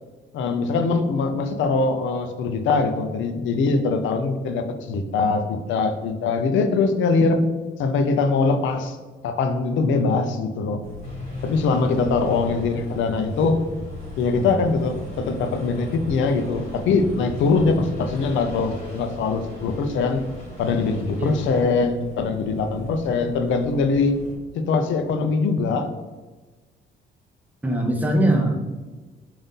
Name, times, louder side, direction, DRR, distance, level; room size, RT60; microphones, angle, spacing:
voice 1, 0.3-7.4 7.8-9.0 9.2-10.8 11.4-13.6 14.2-20.2 20.6-24.1 24.5-25.9, left 4 dB, 75° left, 7 dB, 0.5 m, -22 dB
sound 1, 10.8-24.4, left 1 dB, 75° right, 0.8 m, -40 dB
sound 2, 11.0-21.6, equal, 30° left, 1.4 m, -38 dB
voice 2, 11.7-12.4 21.2-21.4 27.6-28.9, right 1 dB, 10° right, 2 dB, 0.6 m, -23 dB
3.9 x 2.6 x 3.6 m, 1.3 s
cardioid pair, 90°, 20 cm